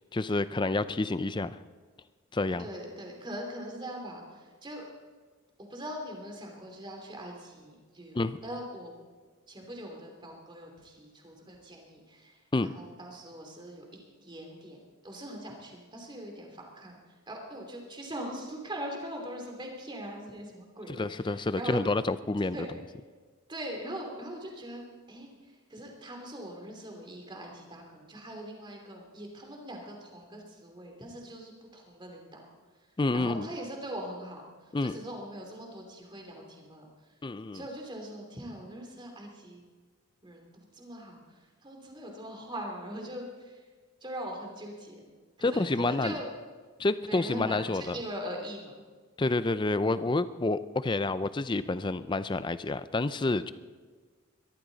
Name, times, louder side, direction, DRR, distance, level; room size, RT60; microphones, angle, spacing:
voice 1, 0.1-1.6 2.3-2.7 8.1-8.4 12.5-12.7 20.9-22.6 33.0-33.5 34.7-35.0 37.2-37.6 45.4-46.2 46.8-48.0 49.2-53.5, left 2 dB, 20° left, 14 dB, 0.4 m, -29 dB
voice 2, 2.6-4.8 5.6-8.9 9.5-13.8 14.2-17.0 17.3-21.8 22.5-22.7 23.5-25.3 25.7-32.4 33.1-34.4 34.8-36.9 37.5-39.6 40.2-43.6 44.0-45.1 45.4-46.3 47.1-48.7 49.3-49.4, right 1 dB, 20° right, 1 dB, 2.8 m, -41 dB
21.5 x 14.0 x 4.0 m, 1.5 s
head